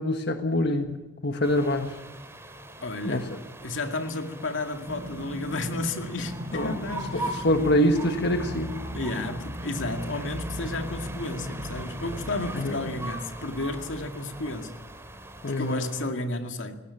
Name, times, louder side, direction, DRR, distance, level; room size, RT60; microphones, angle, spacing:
voice 1, 0.0-2.0 3.0-3.3 6.5-6.8 7.1-8.7 12.6-12.8 15.4-15.8, left 1 dB, 60° left, 1.6 m, -25 dB
sound 1, 1.4-16.1, right 1 dB, 15° right, 2.9 m, -40 dB
voice 2, 2.8-3.3 3.6-7.4 7.8-7.9 8.9-14.8 15.6-16.8, left 2 dB, 85° left, 2.2 m, -32 dB
sound 2, 4.9-13.1, equal, 60° right, 6.2 m, -38 dB
19.0 x 18.0 x 9.8 m
head